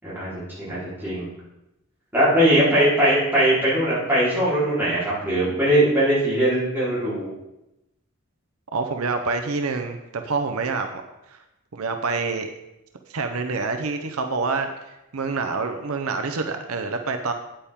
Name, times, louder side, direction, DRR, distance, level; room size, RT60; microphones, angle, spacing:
voice 1, 0.0-1.3 2.1-7.3, right 1 dB, 10° right, -10 dB, 3.9 m, -20 dB
voice 2, 8.7-11.0 11.3-11.4 11.7-12.5 13.1-17.3, right 4 dB, 80° right, 6 dB, 0.7 m, -27 dB
8.9 x 8.8 x 3.7 m, 0.91 s
head